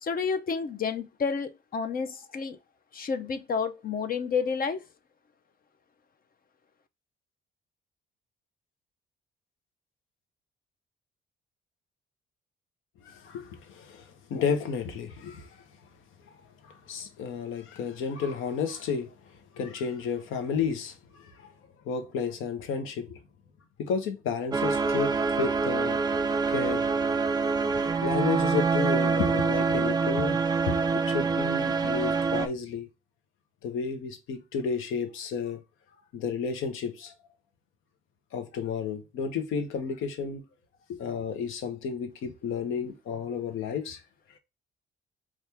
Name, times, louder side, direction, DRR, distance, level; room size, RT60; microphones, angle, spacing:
voice 1, 0.0-2.6 2.9-4.8, left 5 dB, 45° left, 0.6 m, -30 dB
voice 2, 13.0-15.6 16.6-19.1 19.5-21.5 21.8-23.2 23.8-26.0 26.5-27.1 27.7-30.4 30.7-30.8 31.1-32.9 33.6-35.6 36.1-37.1 38.3-40.4 40.9-44.0, left 6 dB, 85° left, 0.8 m, -32 dB
sound 1, 24.5-32.5, right 4 dB, 20° right, 0.4 m, -26 dB
4.3 x 2.4 x 3.3 m
cardioid pair, 90°, 20 cm